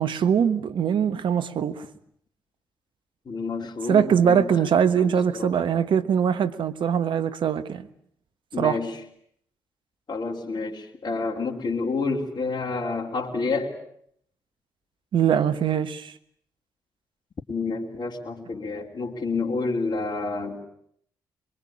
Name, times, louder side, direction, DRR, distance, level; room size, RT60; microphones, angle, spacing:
voice 1, 0.0-1.8 3.9-7.9 8.6-8.8 15.1-16.1, right 8 dB, 65° right, 1.3 m, -22 dB
voice 2, 3.2-4.5 5.0-5.6 8.5-9.0 10.1-13.8 17.5-20.6, left 3 dB, 50° left, 3.3 m, -29 dB
23.0 x 22.0 x 8.7 m
hypercardioid pair, 45°, 9 cm